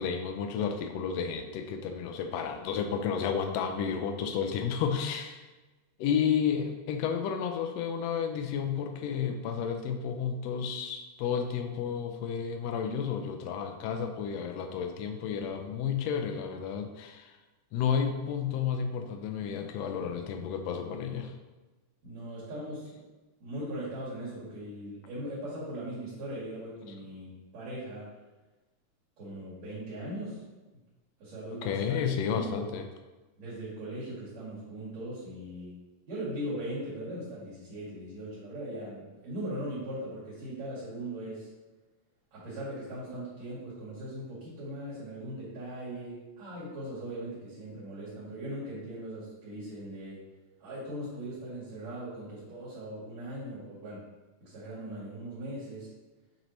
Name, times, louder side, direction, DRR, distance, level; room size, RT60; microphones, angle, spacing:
voice 1, 0.0-5.4 6.0-17.4 17.7-21.3 31.6-32.9, left 7 dB, 80° left, 5 dB, 1.5 m, -31 dB
voice 2, 22.0-23.0 23.4-28.1 29.2-30.4 31.2-32.7 33.4-35.8 36.1-41.5 42.3-50.2 50.6-54.0 54.4-55.9, right 1 dB, 65° right, -10 dB, 3.4 m, -39 dB
7.9 x 4.3 x 3.1 m, 1.2 s
omnidirectional pair, 3.5 m